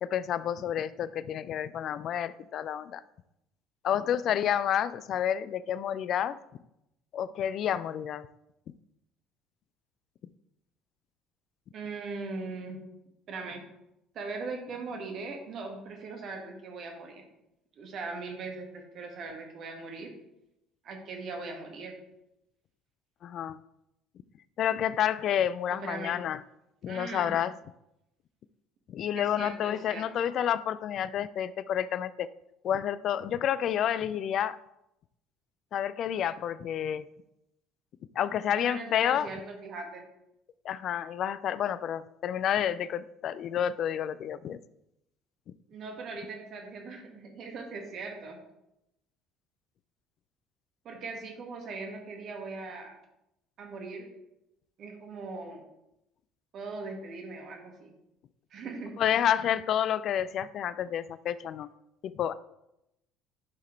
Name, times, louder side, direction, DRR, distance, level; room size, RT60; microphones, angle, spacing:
voice 1, 0.0-3.0 3.8-6.4 7.1-8.3 23.2-23.6 24.6-26.4 26.8-27.5 28.9-32.3 32.6-34.6 35.7-37.1 38.2-39.3 40.6-44.6 59.0-61.7 62.0-62.3, left 9 dB, 55° left, 16 dB, 0.4 m, -29 dB
voice 2, 11.7-12.8 13.3-13.6 14.1-17.2 17.8-20.1 20.8-22.0 25.7-26.2 26.9-27.3 29.1-30.1 38.6-40.0 45.7-48.4 50.8-53.0 53.6-54.1 54.8-55.6 56.5-57.9 58.5-59.0, right 3 dB, 50° right, 3 dB, 1.7 m, -40 dB
10.5 x 5.6 x 3.2 m, 0.86 s
hypercardioid pair, 60°, 0 cm